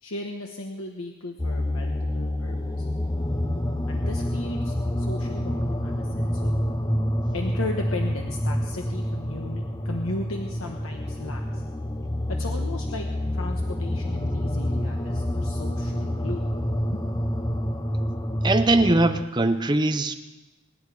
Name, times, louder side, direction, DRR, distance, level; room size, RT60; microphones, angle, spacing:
voice 1, 0.0-2.9 3.9-6.5 7.3-11.7 12.4-16.5 16.9-17.0, left 2 dB, 80° left, 2 dB, 1.2 m, -36 dB
sound 1, 1.4-19.2, left 1 dB, 20° left, 0.8 m, -28 dB
voice 2, 18.4-20.1, right 2 dB, 20° right, 8 dB, 0.8 m, -21 dB
24.0 x 10.5 x 4.9 m, 1.1 s
head